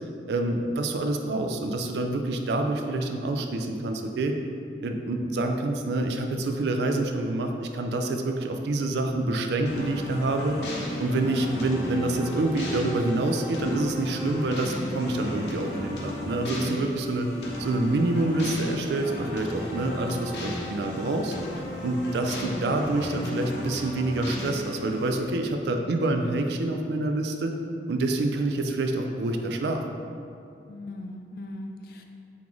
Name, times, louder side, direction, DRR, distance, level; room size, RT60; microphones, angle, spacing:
voice 1, 0.3-4.4 4.8-10.6 11.0-17.3 17.6-27.5 27.9-29.8, right 2 dB, 70° right, 4 dB, 0.3 m, -27 dB
sound 1, 9.7-25.2, left 1 dB, 70° left, 0.7 m, -35 dB
voice 2, 30.7-32.0, left 1 dB, 55° left, 4 dB, 0.3 m, -40 dB
3.8 x 3.6 x 3.0 m, 2.5 s
head